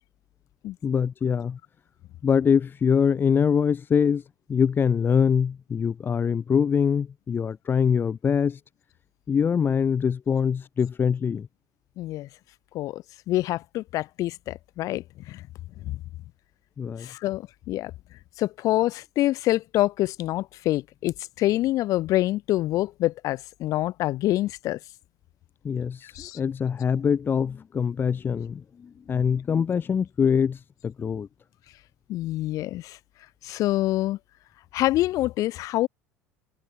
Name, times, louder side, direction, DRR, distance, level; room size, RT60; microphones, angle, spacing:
voice 1, 0.8-1.6 2.2-4.2 4.5-8.6 9.3-11.5 16.8-17.1 25.6-31.3, left 7 dB, 25° left, 1.1 m, -24 dB
voice 2, 12.0-12.3 12.7-15.4 15.8-16.0 17.0-17.9 18.4-24.8 26.1-26.4 32.1-33.0 33.4-34.2 34.7-35.9, left 16 dB, 50° left, 3.3 m, -26 dB
figure-of-eight pair, 70°, 8 cm